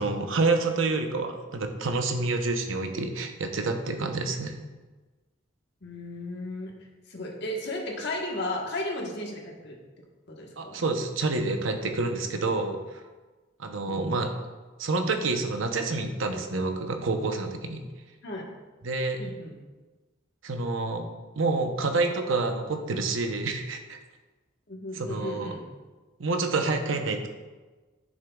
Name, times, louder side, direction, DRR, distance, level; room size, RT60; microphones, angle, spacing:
voice 1, 0.0-4.6 10.6-13.0 13.6-14.3 14.8-17.8 18.8-19.2 20.4-21.1 21.4-24.0 24.9-25.5 26.2-27.3, right 3 dB, 75° right, 5 dB, 0.8 m, -28 dB
voice 2, 5.8-6.7 7.1-9.8 10.3-10.9 13.9-14.1 18.2-18.4 19.2-19.5 24.7-25.6, left 1 dB, 55° left, 0 dB, 1.3 m, -34 dB
10.5 x 6.3 x 2.3 m, 1.3 s
head